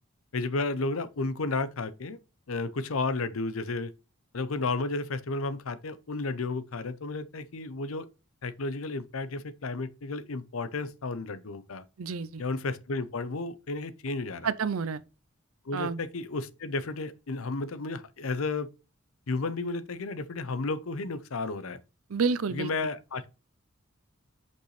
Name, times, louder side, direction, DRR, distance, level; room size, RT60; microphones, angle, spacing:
voice 1, 0.3-2.2 2.5-3.9 4.3-8.1 8.4-11.8 12.4-14.5 15.7-18.7 19.3-21.8 22.5-23.2, left 3 dB, 80° left, 0.7 m, -32 dB
voice 2, 12.0-12.4 14.4-15.0 15.7-16.0 22.1-22.7, right 5 dB, 85° right, 0.5 m, -29 dB
6.6 x 5.3 x 3.2 m
head